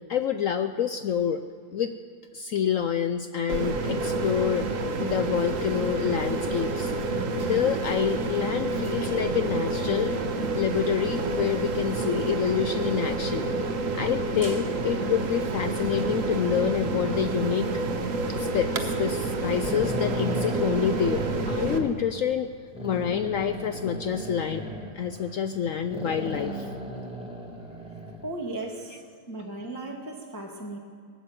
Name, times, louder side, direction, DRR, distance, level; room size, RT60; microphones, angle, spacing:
voice 1, 0.1-1.4 1.7-2.0 2.3-4.7 5.0-6.9 7.3-10.1 10.5-13.5 13.9-17.7 18.3-22.5 22.8-24.6 24.9-26.7, left 8 dB, 75° left, 9 dB, 0.7 m, -27 dB
sound 1, 3.5-21.8, right 2 dB, 50° right, 1.4 m, -29 dB
sound 2, 15.7-18.5 19.1-19.2 19.6-21.9 22.7-25.6 25.9-28.3, right 1 dB, 5° right, 1.9 m, -36 dB
voice 2, 28.2-30.8, right 2 dB, 10° left, 0 dB, 1.3 m, -36 dB
19.5 x 9.5 x 7.7 m, 2.2 s
omnidirectional pair, 1.9 m